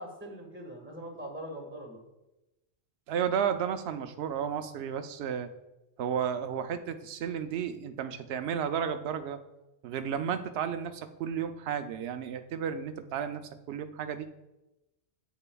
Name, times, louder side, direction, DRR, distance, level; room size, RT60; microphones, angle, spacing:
voice 1, 0.0-2.0, equal, 10° right, 0 dB, 1.5 m, -42 dB
voice 2, 3.1-5.5 6.0-9.4 9.8-14.3, right 8 dB, 65° right, 8 dB, 0.8 m, -33 dB
9.8 x 8.2 x 2.3 m, 0.99 s
omnidirectional pair, 1.2 m